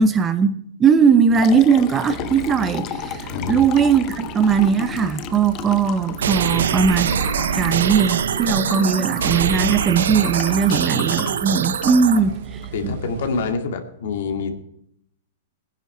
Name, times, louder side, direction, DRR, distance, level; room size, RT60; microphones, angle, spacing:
voice 1, 0.0-7.2 7.5-12.3 12.8-12.9, right 6 dB, 20° right, 0.8 m, -19 dB
Liquid, 1.0-12.9, left 12 dB, 30° left, 0.8 m, -35 dB
sound 1, 2.0-13.5, right 9 dB, 60° right, 1.2 m, -37 dB
voice 2, 3.3-3.6 10.7-10.8 12.1-12.2 12.7-14.5, left 5 dB, 70° left, 2.2 m, -26 dB
sound 2, 6.2-12.2, right 7 dB, 90° right, 0.9 m, -23 dB
19.0 x 10.5 x 4.6 m
hypercardioid pair, 150°, 0 cm